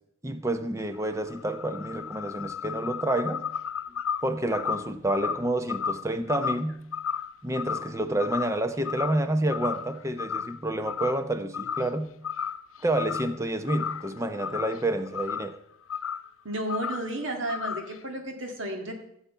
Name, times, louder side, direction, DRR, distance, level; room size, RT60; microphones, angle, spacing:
voice 1, 0.2-3.5 4.2-6.8 7.4-12.1 12.8-15.6, right 1 dB, 15° right, 9 dB, 0.8 m, -29 dB
sound 1, 0.9-8.6 8.8-9.3 9.5-10.6 10.8-11.2 11.5-12.0 12.2-13.4 13.6-15.6 15.9-16.3 16.7-17.1 17.5-18.0, left 7 dB, 75° left, 0.5 m, -33 dB
voice 2, 16.4-18.9, right 1 dB, 60° right, 3 dB, 2.1 m, -32 dB
15.5 x 7.2 x 5.7 m, 0.75 s
head